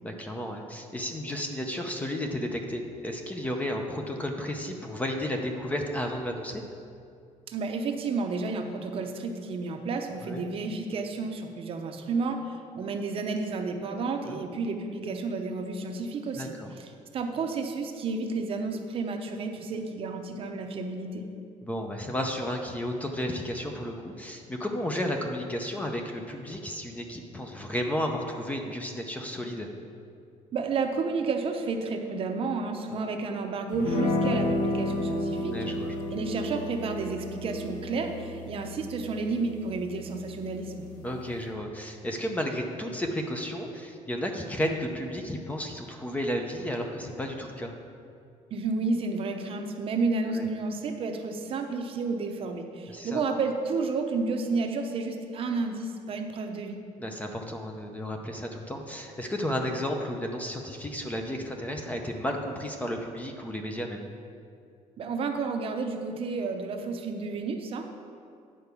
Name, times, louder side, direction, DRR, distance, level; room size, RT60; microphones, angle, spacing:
voice 1, 0.0-6.6 10.2-10.4 14.2-14.4 16.3-16.7 21.6-29.7 32.9-33.1 35.5-36.0 41.0-47.7 50.3-50.5 52.9-53.2 57.0-64.1, equal, 10° left, 3 dB, 0.6 m, -33 dB
voice 2, 7.5-21.3 30.5-35.7 36.1-40.9 48.5-56.8 65.0-67.8, right 4 dB, 45° right, 4 dB, 0.7 m, -31 dB
sound 1, 33.7-41.5, left 1 dB, 75° left, 1.3 m, -32 dB
9.7 x 4.6 x 6.9 m, 2.4 s
cardioid pair, 165°, 13 cm